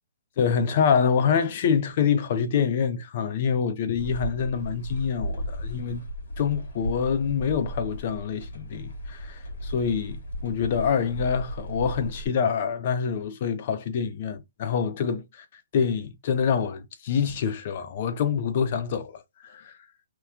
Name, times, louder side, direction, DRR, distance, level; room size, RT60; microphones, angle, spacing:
voice 1, 0.4-6.0 6.4-15.4 15.7-19.7, left 7 dB, 45° left, 0.6 m, -26 dB
sound 1, 4.0-12.3, equal, 75° left, 1.4 m, -35 dB
3.0 x 2.2 x 3.4 m
hypercardioid pair, 155°, 0 cm